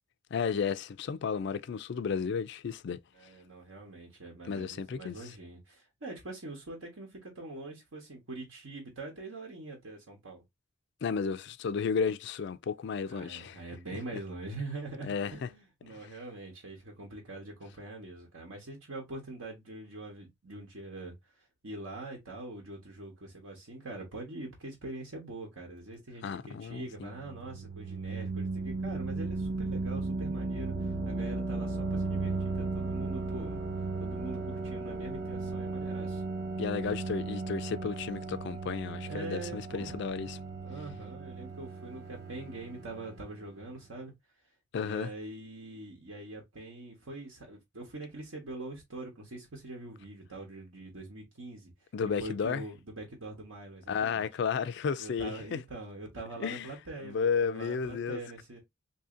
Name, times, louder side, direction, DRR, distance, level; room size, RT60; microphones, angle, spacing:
voice 1, 0.3-3.0 4.5-5.2 11.0-13.6 15.0-15.5 15.9-16.0 26.2-27.1 36.6-40.4 44.7-45.1 51.9-52.6 53.9-55.6 56.4-56.7 57.0-58.2, left 6 dB, 55° left, 0.3 m, -33 dB
voice 2, 3.1-10.4 13.1-33.6 34.0-36.2 39.1-40.0 40.6-44.1 44.8-51.7 52.2-54.3 55.0-58.6, right 2 dB, 75° right, 1.2 m, -43 dB
sound 1, 26.8-43.5, right 3 dB, 50° right, 0.7 m, -36 dB
2.8 x 2.7 x 3.7 m
head